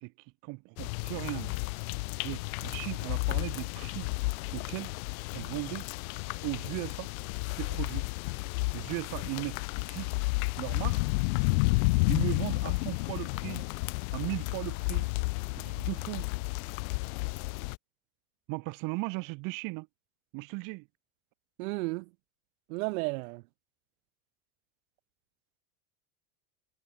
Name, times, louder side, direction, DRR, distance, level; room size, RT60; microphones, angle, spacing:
voice 1, 0.0-1.6 2.2-4.1 4.5-4.9 5.3-5.9 6.4-7.1 7.5-8.0 8.7-10.1 10.6-11.0 12.1-13.7 14.1-15.1 15.5-16.3 18.5-19.9 20.3-20.9, right 27 dB, 45° right, 2.1 m, -37 dB
sound 1, 0.8-17.8, left 26 dB, 70° left, 2.7 m, -32 dB
voice 2, 21.6-22.1 22.7-23.4, right 26 dB, 70° right, 2.9 m, -33 dB
cardioid pair, 175°, 44 cm